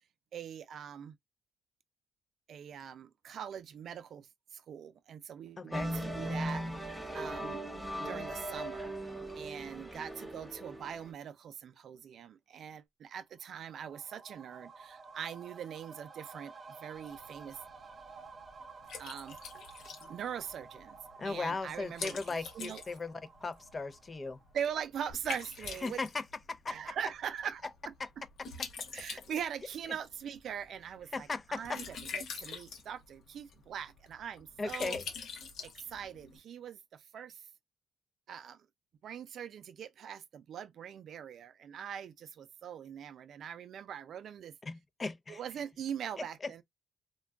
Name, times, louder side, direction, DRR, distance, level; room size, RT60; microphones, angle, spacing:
voice 1, 0.3-1.1 2.5-7.6 8.0-8.9 9.4-17.6 19.0-19.4 20.1-21.0 21.2-22.2 22.5-22.8 24.5-26.0 26.7-27.9 28.9-35.0 35.6-37.4 38.3-38.7 39.0-44.5 45.3-46.6, right 8 dB, 70° right, 0.4 m, -42 dB
voice 2, 5.6-5.9 21.2-24.4 25.8-26.9 28.0-28.1 31.1-31.8 34.6-35.0 44.6-45.4, left 3 dB, 35° left, 0.4 m, -37 dB
sound 1, 5.7-11.1, right 1 dB, 5° right, 1.0 m, -38 dB
sound 2, 13.3-24.8 25.1-25.2, right 4 dB, 40° right, 0.7 m, -53 dB
Liquid, 16.9-36.4, left 5 dB, 75° left, 0.8 m, -47 dB
2.3 x 2.2 x 3.4 m
cardioid pair, 85°, 0 cm